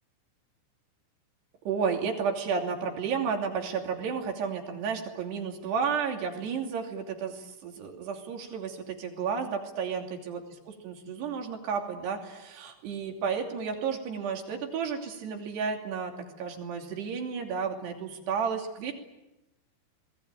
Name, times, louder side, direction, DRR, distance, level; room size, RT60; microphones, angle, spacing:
voice 1, 1.7-16.1 16.4-18.9, right 6 dB, 70° right, 3 dB, 4.9 m, -32 dB
28.5 x 20.5 x 9.2 m, 0.98 s
omnidirectional pair, 5.1 m